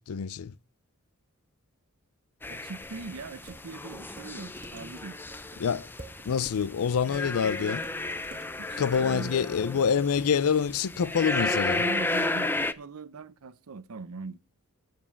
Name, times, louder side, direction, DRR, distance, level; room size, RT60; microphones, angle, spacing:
voice 1, 0.1-0.5 5.6-5.9 6.3-7.8 8.8-11.8, left 6 dB, 90° left, 0.4 m, -26 dB
sound 1, 2.4-12.7, left 2 dB, 10° left, 0.4 m, -33 dB
voice 2, 2.5-5.2 8.6-9.3 11.8-14.4, right 4 dB, 85° right, 0.6 m, -41 dB
Dishes pots and pans, 2.8-9.2, right 3 dB, 40° right, 1.4 m, -51 dB
7.6 x 7.3 x 6.9 m
head